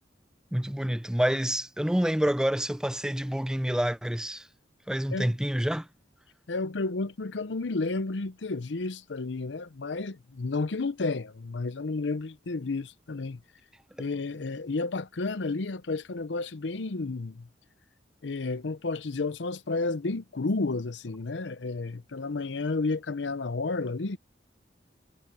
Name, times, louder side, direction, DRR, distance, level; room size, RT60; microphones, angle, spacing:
voice 1, 0.5-4.5 4.9-5.9, equal, 5° right, 0.5 m, -27 dB
voice 2, 6.5-13.4 14.0-17.5 18.2-24.2, left 3 dB, 85° left, 0.7 m, -31 dB
head